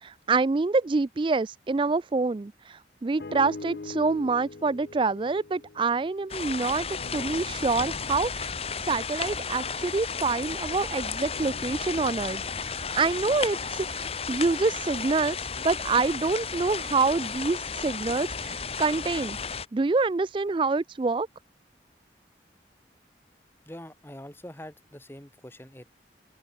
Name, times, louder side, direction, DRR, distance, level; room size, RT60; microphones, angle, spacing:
voice 1, 0.0-6.9 7.1-8.5 8.8-15.4 15.6-19.4 19.7-21.3, right 4 dB, 30° right, 0.3 m, -26 dB
sound 1, 3.2-6.5 6.9-10.7 11.3-15.5 16.2-16.3, left 3 dB, 60° left, 0.7 m, -45 dB
sound 2, 6.3-19.7, left 5 dB, 35° left, 1.7 m, -33 dB
voice 2, 23.6-25.9, left 1 dB, 15° left, 2.2 m, -44 dB
open air
head